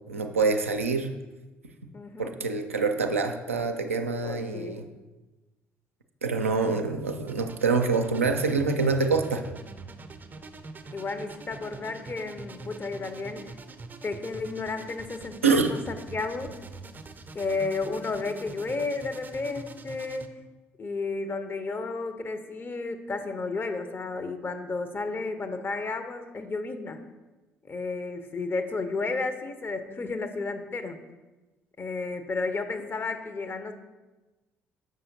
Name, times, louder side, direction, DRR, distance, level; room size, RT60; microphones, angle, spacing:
voice 1, 0.1-1.1 2.2-4.8 6.2-9.4 15.4-15.7, right 4 dB, 85° right, 4 dB, 0.4 m, -25 dB
voice 2, 1.9-2.3 4.2-4.9 10.9-13.6 14.0-16.5 17.3-20.3 20.8-27.0 27.7-31.0 31.8-33.7, left 3 dB, 30° left, 8 dB, 0.6 m, -32 dB
sound 1, 7.3-20.3, right 4 dB, 25° right, 0.5 m, -44 dB
7.6 x 5.5 x 2.7 m, 1.1 s
figure-of-eight pair, 50°, 7 cm